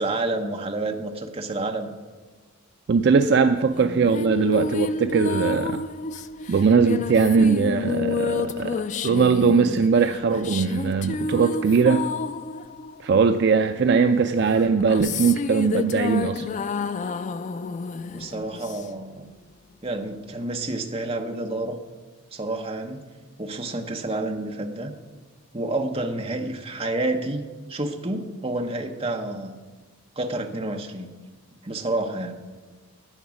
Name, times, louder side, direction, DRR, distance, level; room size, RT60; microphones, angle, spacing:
voice 1, 0.0-1.9 18.1-19.3 19.8-21.8 22.3-23.1 23.4-24.9 25.5-27.4 27.7-29.6 30.2-31.1 31.6-32.4, right 2 dB, 30° right, 4 dB, 0.9 m, -29 dB
voice 2, 2.9-5.8 6.5-8.8 9.0-12.1 13.0-16.5, right 5 dB, 50° right, 8 dB, 0.4 m, -20 dB
sound 1, 3.7-13.6 14.5-19.2, left 4 dB, 35° left, 0.3 m, -30 dB
11.0 x 8.7 x 6.3 m, 1.4 s
head